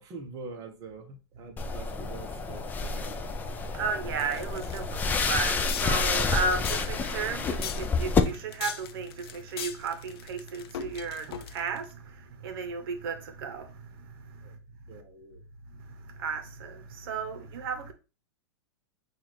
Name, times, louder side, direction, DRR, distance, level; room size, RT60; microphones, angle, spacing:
voice 1, 0.0-3.3 3.8-3.9 14.4-14.5 14.9-15.4, right 4 dB, 25° right, 0.7 m, -45 dB
sound 1, 1.6-8.2, left 4 dB, 10° left, 0.3 m, -29 dB
voice 2, 3.7-13.8 16.0-17.9, right 5 dB, 60° right, 0.8 m, -34 dB
sound 2, 4.2-11.8, left 9 dB, 65° left, 0.6 m, -41 dB
5.6 x 2.4 x 3.2 m
hypercardioid pair, 135°, 14 cm